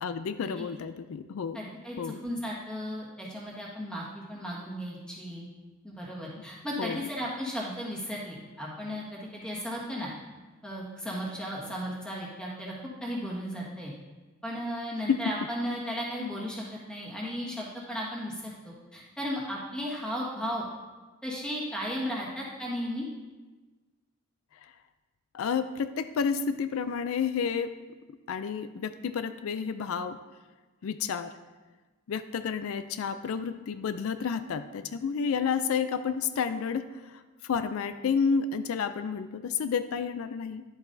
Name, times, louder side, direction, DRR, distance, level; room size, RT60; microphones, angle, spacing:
voice 1, 0.0-1.6 2.0-2.2 6.8-7.1 15.1-15.2 25.3-27.7 28.3-30.2 30.8-31.3 32.1-40.6, left 6 dB, 80° left, 11 dB, 0.4 m, -30 dB
voice 2, 1.5-5.5 5.8-10.1 10.6-12.7 13.0-13.9 14.4-20.7 21.2-23.0, equal, 5° left, -5 dB, 1.6 m, -35 dB
11.0 x 7.1 x 2.7 m, 1.3 s
head